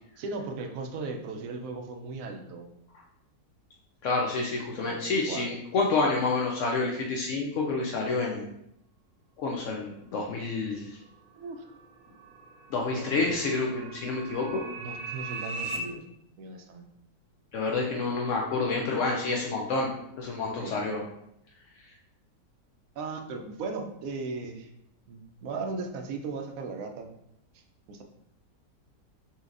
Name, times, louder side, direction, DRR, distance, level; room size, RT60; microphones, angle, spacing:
voice 1, 0.2-2.7 4.7-5.5 11.4-11.6 12.9-13.3 14.8-16.0 16.4-16.9 20.6-20.8 23.0-24.7 25.1-27.1 27.9-28.0, right 3 dB, 70° right, 4 dB, 0.8 m, -37 dB
voice 2, 4.0-8.5 9.4-11.0 12.7-14.7 17.5-19.9 20.2-21.0, left 3 dB, 80° left, -1 dB, 0.6 m, -28 dB
sound 1, 11.5-15.8, right 4 dB, 85° right, 1.3 m, -40 dB
5.6 x 2.9 x 2.5 m, 0.78 s
omnidirectional pair, 1.9 m